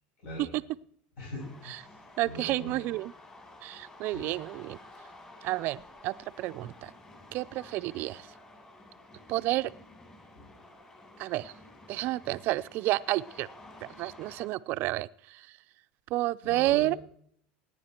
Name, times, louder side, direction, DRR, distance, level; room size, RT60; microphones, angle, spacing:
voice 1, 0.2-0.5 1.2-2.8 4.0-4.3 10.3-10.5 16.4-16.9, left 1 dB, 65° left, -4 dB, 6.3 m, -42 dB
sound 1, 1.4-14.5, left 2 dB, 20° left, 3.7 m, -52 dB
voice 2, 2.2-3.1 3.6-4.8 5.4-6.9 7.3-8.3 9.3-9.7 11.2-11.5 11.9-13.5 14.0-15.5 16.1-17.0, right 17 dB, 55° right, 14 dB, 0.5 m, -30 dB
19.0 x 9.9 x 4.4 m, 0.64 s
supercardioid pair, 120°, 4 cm